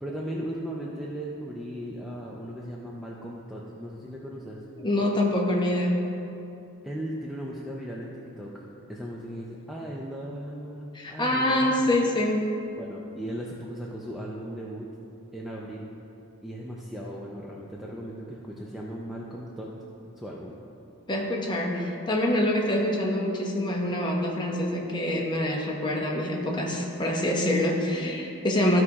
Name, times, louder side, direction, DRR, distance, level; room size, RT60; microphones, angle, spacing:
voice 1, 0.0-4.6 6.8-11.8 12.8-14.9 15.3-15.9 16.4-19.7 20.2-20.5, equal, ahead, -4 dB, 0.4 m, -37 dB
voice 2, 4.8-6.1 10.9-12.5 21.1-28.8, left 1 dB, 20° left, -1 dB, 0.9 m, -25 dB
13.5 x 4.7 x 2.9 m, 2.8 s
head